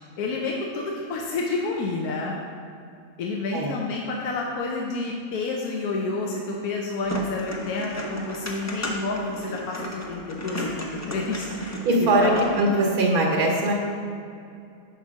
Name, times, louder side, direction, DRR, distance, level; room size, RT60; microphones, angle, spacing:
voice 1, 0.2-2.3 3.2-11.8 12.2-12.6, left 3 dB, 80° left, -1 dB, 1.2 m, -29 dB
sound 1, 7.0-12.6, equal, 20° left, 0.4 m, -34 dB
voice 2, 11.8-12.3 12.6-13.7, right 2 dB, 80° right, -1 dB, 1.3 m, -21 dB
5.3 x 4.7 x 6.2 m, 2.4 s
omnidirectional pair, 1.6 m